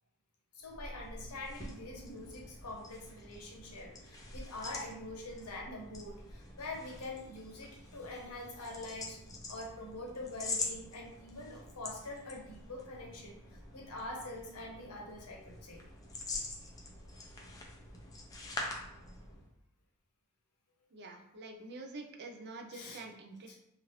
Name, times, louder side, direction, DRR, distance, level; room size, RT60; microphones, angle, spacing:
voice 1, 0.5-9.2 9.5-15.8 22.7-23.0 23.5-23.6, left 2 dB, 80° left, -1 dB, 0.8 m, -45 dB
sound 1, 0.6-19.5, left 2 dB, 15° left, 0.4 m, -45 dB
voice 2, 20.9-23.6, right 3 dB, 50° right, 3 dB, 0.4 m, -47 dB
3.0 x 2.5 x 3.0 m, 0.78 s
head